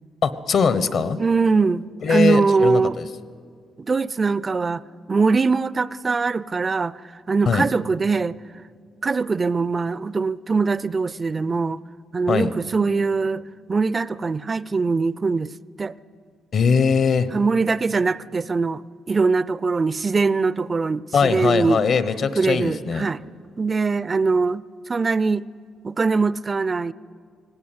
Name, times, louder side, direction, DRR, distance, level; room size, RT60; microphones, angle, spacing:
voice 1, 0.2-1.2 2.0-3.0 7.5-7.6 12.3-12.5 16.5-17.3 21.1-23.1, left 5 dB, 60° left, 1.1 m, -20 dB
voice 2, 1.2-3.0 3.8-7.0 7.3-8.4 9.0-11.8 12.1-13.4 13.7-15.5 15.8-16.0 17.3-21.8 22.4-23.2 23.6-25.5 25.8-26.9, right 4 dB, 30° right, 0.4 m, -22 dB
18.0 x 17.0 x 9.2 m
cardioid pair, 90°, 0 cm